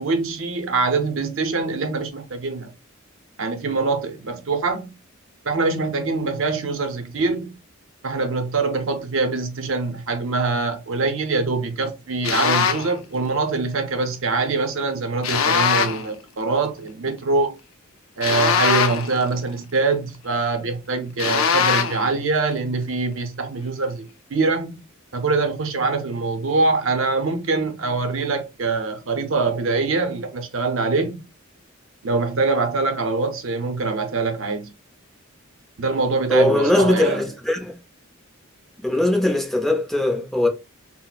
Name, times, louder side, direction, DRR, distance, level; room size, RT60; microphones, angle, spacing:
voice 1, 0.0-2.7 3.4-4.9 5.4-7.5 8.0-17.6 18.2-24.8 25.1-31.2 32.0-34.7 35.8-37.2, right 3 dB, 70° right, 0.6 m, -24 dB
sound 1, 12.2-12.9 15.2-16.1 18.2-19.2 21.2-22.1, left 6 dB, 75° left, 0.5 m, -21 dB
voice 2, 36.3-37.8 38.8-40.5, left 1 dB, ahead, 0.5 m, -20 dB
4.0 x 2.0 x 2.3 m
head